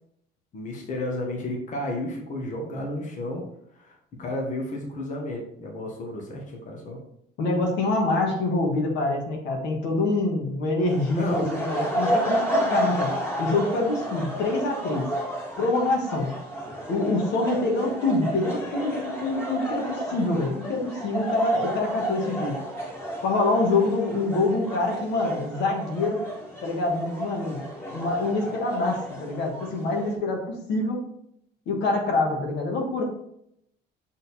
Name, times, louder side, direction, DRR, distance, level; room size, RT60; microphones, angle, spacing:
voice 1, 0.5-3.4 3.7-7.0 11.1-11.4, left 1 dB, 40° left, 0 dB, 1.4 m, -32 dB
voice 2, 7.4-13.1 13.4-15.1 15.6-16.3 16.9-22.6 23.2-26.2 26.6-31.0 31.7-33.0, left 2 dB, 70° left, 1 dB, 1.6 m, -25 dB
sound 1, 10.8-30.2, right 1 dB, 15° left, 2.1 m, -31 dB
6.5 x 3.9 x 4.1 m, 0.74 s
cardioid pair, 150°, 19 cm